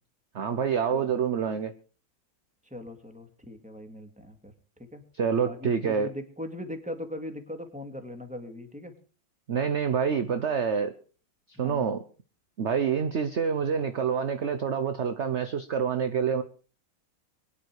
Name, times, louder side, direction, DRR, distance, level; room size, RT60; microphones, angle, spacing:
voice 1, 0.3-1.7 5.1-6.1 9.5-10.9 11.6-12.0 12.6-16.4, right 6 dB, 50° right, 9 dB, 0.9 m, -27 dB
voice 2, 2.7-4.5 4.9-5.0 5.4-8.9 11.6-11.9, left 1 dB, 5° right, 6 dB, 2.2 m, -40 dB
22.5 x 10.0 x 4.8 m, 0.39 s
omnidirectional pair, 2.2 m